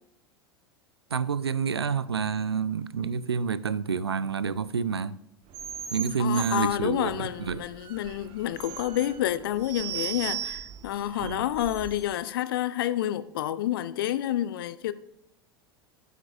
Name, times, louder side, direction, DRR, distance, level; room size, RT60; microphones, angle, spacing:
voice 1, 1.1-5.2 5.9-7.6 11.2-11.4, right 6 dB, 85° right, 0.4 m, -28 dB
sound 1, 5.5-12.2, right 11 dB, 45° right, 1.2 m, -38 dB
voice 2, 6.2-14.9, left 12 dB, 65° left, 0.5 m, -29 dB
14.5 x 8.1 x 2.4 m
figure-of-eight pair, 80°, 13 cm